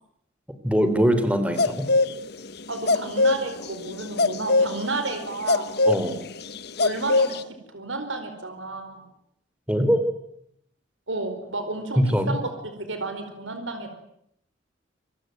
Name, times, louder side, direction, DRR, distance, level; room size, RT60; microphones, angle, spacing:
voice 1, 0.6-1.9 5.8-6.2 9.7-10.0 12.0-12.4, equal, 5° right, 9 dB, 3.4 m, -22 dB
sound 1, 1.6-2.2 2.4-2.5 2.7-7.4, left 3 dB, 55° left, 1.1 m, -21 dB
voice 2, 2.7-5.8 6.8-9.0 11.1-14.0, right 2 dB, 80° right, 7 dB, 4.7 m, -32 dB
27.5 x 22.0 x 9.3 m, 0.74 s
head